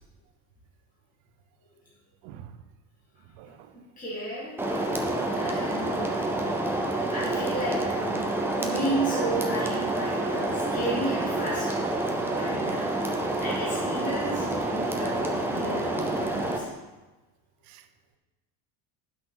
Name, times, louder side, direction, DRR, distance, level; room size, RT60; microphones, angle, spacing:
voice 1, 2.2-2.6 3.3-3.8 12.4-13.0 17.6-17.9, right 8 dB, 80° right, 10 dB, 0.8 m, -44 dB
voice 2, 4.0-4.5 5.3-6.2 7.1-8.3 8.6-11.8 12.3-13.0 13.4-16.7, right 1 dB, 15° left, -8 dB, 2.1 m, -33 dB
sound 1, 4.6-16.6, right 2 dB, 5° right, 0.5 m, -28 dB
10.0 x 6.0 x 3.9 m, 1.2 s
cardioid pair, 150°, 47 cm